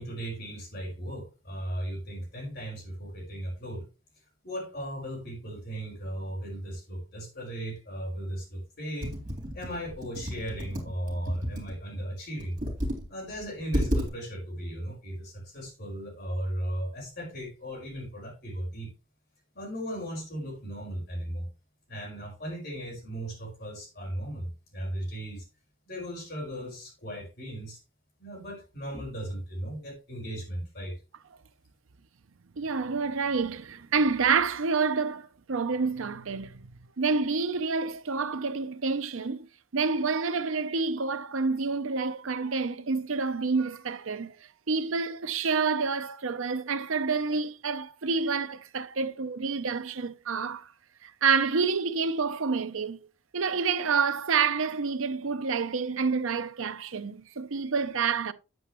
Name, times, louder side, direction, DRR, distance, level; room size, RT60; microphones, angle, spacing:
voice 1, 0.0-3.8 4.4-9.1 9.5-12.6 13.1-18.9 19.5-21.5 21.9-25.4 25.9-27.8 28.2-31.0, right 1 dB, 45° left, 5.0 m, -36 dB
Computer keyboard, 9.0-11.7 12.4-13.1 13.4-13.5 13.7-14.1, equal, 35° right, 3.6 m, -31 dB
voice 2, 32.6-36.6 37.0-39.5 39.7-44.3 44.7-50.6 51.0-53.0 53.3-58.3, right 5 dB, 70° right, 0.7 m, -28 dB
9.2 x 8.0 x 3.0 m
head